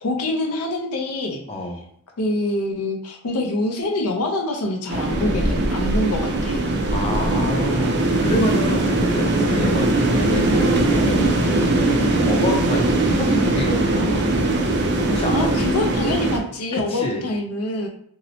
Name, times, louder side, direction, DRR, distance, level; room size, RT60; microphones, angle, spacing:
voice 1, 0.0-1.4 2.2-6.6 8.4-8.7 15.3-17.9, left 1 dB, 85° left, 1 dB, 0.5 m, -25 dB
voice 2, 1.5-1.8 6.9-14.4 15.1-15.5 16.7-17.2, equal, 25° left, 1 dB, 0.5 m, -28 dB
sound 1, 4.9-16.4, right 2 dB, 50° right, 0.4 m, -20 dB
2.7 x 2.0 x 2.7 m, 0.66 s
head